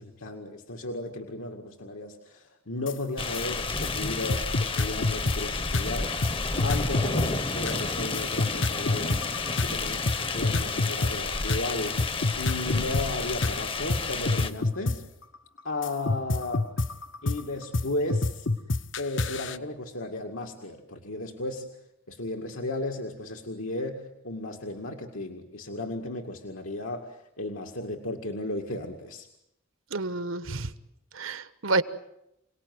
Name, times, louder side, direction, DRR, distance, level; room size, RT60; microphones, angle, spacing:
voice 1, 0.0-6.2 6.6-9.2 9.6-12.0 12.3-15.0 15.6-16.7 17.2-18.5 19.0-21.7 22.1-29.3, left 2 dB, 80° left, 2 dB, 2.2 m, -34 dB
sound 1, 2.9-3.0 3.3-3.4 3.8-3.9 4.3-5.4 5.7-5.9 6.2-6.3 6.6-7.3 7.7-10.2 10.4-11.1 11.5-11.6 12.0-13.0 13.4-13.5 13.9-14.0 14.3-15.0 15.3-17.8 18.1-19.6, left 2 dB, 60° left, 1.0 m, -26 dB
sound 2, 3.2-14.5, left 3 dB, 25° left, 0.9 m, -31 dB
voice 2, 29.9-30.7 31.1-31.8, right 3 dB, 75° right, 13 dB, 1.3 m, -29 dB
28.0 x 18.5 x 9.6 m, 0.84 s
head